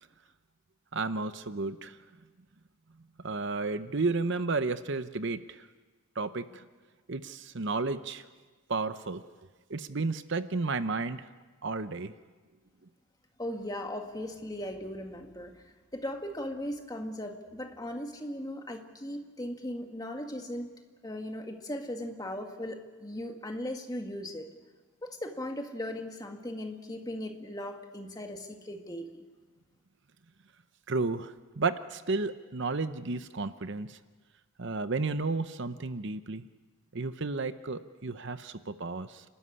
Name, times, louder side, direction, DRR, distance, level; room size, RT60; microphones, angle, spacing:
voice 1, 0.9-2.0 3.2-5.7 6.2-6.6 7.1-8.3 8.7-9.2 9.7-11.3 11.6-12.1 30.9-34.0 34.6-36.4 36.9-39.2, right 3 dB, 55° right, 12 dB, 0.8 m, -32 dB
voice 2, 13.4-15.5 15.9-20.7 21.0-24.5 25.0-29.2, left 1 dB, 15° left, 4 dB, 1.8 m, -38 dB
29.5 x 13.0 x 9.8 m, 1.4 s
head